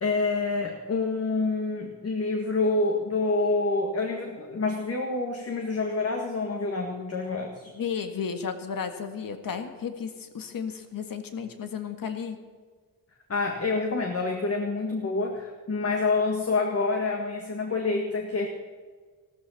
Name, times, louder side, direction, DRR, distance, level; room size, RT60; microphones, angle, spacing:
voice 1, 0.0-7.7 13.3-18.5, left 3 dB, 40° left, 2 dB, 1.8 m, -27 dB
voice 2, 7.7-12.4, left 6 dB, 65° left, 7 dB, 1.7 m, -33 dB
16.0 x 13.5 x 5.7 m, 1.5 s
wide cardioid pair, 125°, 36 cm